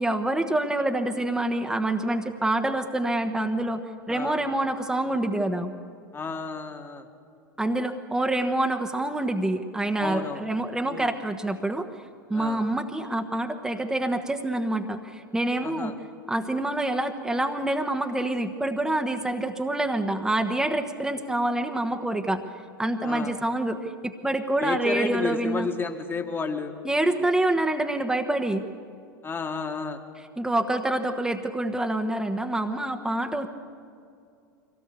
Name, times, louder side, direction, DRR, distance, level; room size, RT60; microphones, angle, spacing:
voice 1, 0.0-3.8 4.1-5.7 7.6-11.9 12.3-15.9 16.3-22.4 22.8-25.7 26.8-28.6 30.4-33.5, right 1 dB, 5° right, 4 dB, 1.2 m, -26 dB
voice 2, 4.1-4.4 6.1-7.1 10.0-10.4 10.9-11.1 12.3-12.6 15.6-16.0 23.0-23.4 24.6-26.8 29.2-30.0, left 4 dB, 20° left, 4 dB, 1.8 m, -31 dB
24.0 x 18.0 x 8.4 m, 2.4 s
figure-of-eight pair, 85°, 12 cm